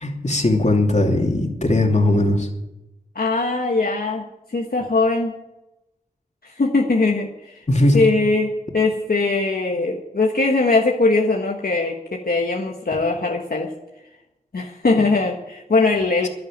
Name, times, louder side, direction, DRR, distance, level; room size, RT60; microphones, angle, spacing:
voice 1, 0.0-2.5 7.7-8.0, left 2 dB, 45° left, 2 dB, 2.7 m, -18 dB
voice 2, 3.1-4.2 4.5-5.3 6.4-7.6 7.9-13.7 14.5-16.3, left 3 dB, 70° left, 0 dB, 1.5 m, -20 dB
11.0 x 11.0 x 8.8 m, 0.93 s
wide cardioid pair, 55°, 16 cm